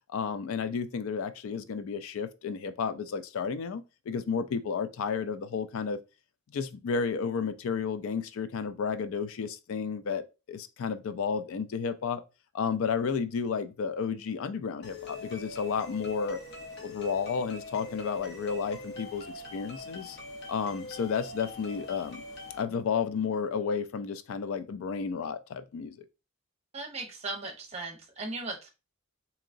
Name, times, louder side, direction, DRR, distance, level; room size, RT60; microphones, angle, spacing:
voice 1, 0.1-6.0 6.5-12.2 12.5-16.4 16.8-20.2 20.5-22.2 22.6-26.0, left 6 dB, 75° left, 0.4 m, -32 dB
sound 1, 14.8-22.6, left 2 dB, 50° left, 0.8 m, -43 dB
voice 2, 26.7-28.7, right 2 dB, 30° right, 0.8 m, -37 dB
3.8 x 2.9 x 2.5 m
head